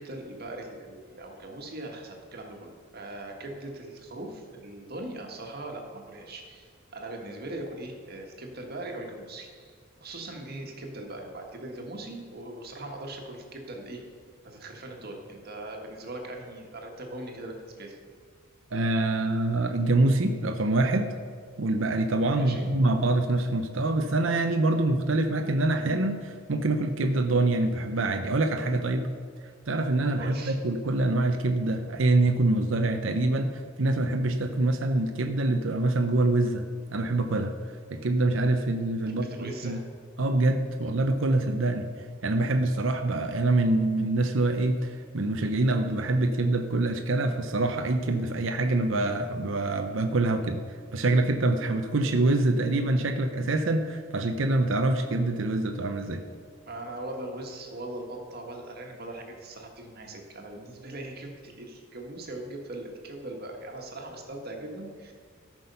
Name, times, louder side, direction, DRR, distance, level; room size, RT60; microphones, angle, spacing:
voice 1, 0.0-9.7 10.0-14.0 14.4-18.0 22.3-22.7 30.2-30.6 39.1-39.8 56.6-65.1, right 1 dB, 50° right, 2 dB, 1.7 m, -40 dB
voice 2, 18.7-21.1 21.6-29.1 29.7-37.5 37.9-39.8 40.2-41.9 42.2-50.6 50.9-56.2, right 2 dB, 70° right, 6 dB, 0.7 m, -25 dB
13.5 x 6.2 x 5.5 m, 2.1 s
head